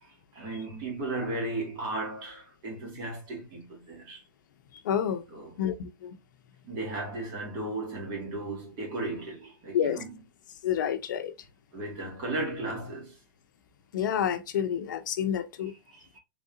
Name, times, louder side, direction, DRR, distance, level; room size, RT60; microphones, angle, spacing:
voice 1, 0.0-4.2 5.3-5.6 6.6-10.1 11.7-13.2 15.9-16.2, right 2 dB, 40° right, 2.3 m, -35 dB
voice 2, 4.8-5.2 5.6-6.1 9.7-10.0 10.6-11.3 13.9-15.7, left 9 dB, 70° left, 0.8 m, -28 dB
3.8 x 3.6 x 2.5 m
hypercardioid pair, 130°, 11 cm